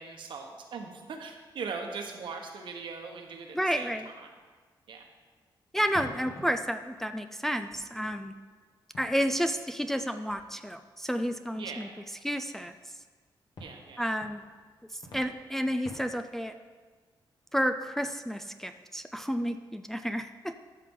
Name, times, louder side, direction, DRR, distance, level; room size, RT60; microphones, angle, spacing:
voice 1, 0.0-4.3 4.9-5.0 11.5-12.0 13.6-14.0, right 5 dB, 70° right, 3 dB, 1.2 m, -40 dB
voice 2, 3.5-4.1 5.7-8.3 9.0-11.9 12.2-12.7 14.0-14.4 14.9-16.6 17.5-20.5, equal, 5° left, 7 dB, 0.3 m, -31 dB
sound 1, 5.4-5.5 5.9-11.1 12.4-12.5 13.6-16.5, left 1 dB, 60° left, 2.0 m, -50 dB
14.0 x 5.8 x 3.8 m, 1.5 s
wide cardioid pair, 135°, 8 cm